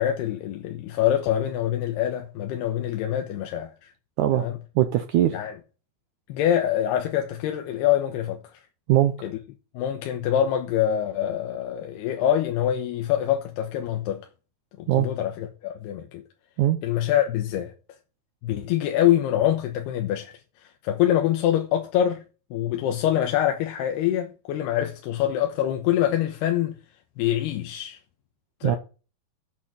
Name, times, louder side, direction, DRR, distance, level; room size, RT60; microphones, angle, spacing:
voice 1, 0.0-3.9 4.4-4.6 5.3-5.5 6.3-8.4 9.2-9.4 9.7-14.3 14.8-16.2 16.8-17.7 18.4-20.3 20.6-22.2 22.5-26.8 27.2-28.0 28.6-28.8, left 11 dB, 90° left, 3.2 m, -25 dB
voice 2, 4.2-4.5 4.8-5.4 8.9-9.3 14.9-15.1 16.6-16.8 28.6-28.8, right 13 dB, 85° right, 1.7 m, -21 dB
8.4 x 6.5 x 7.5 m
omnidirectional pair, 4.6 m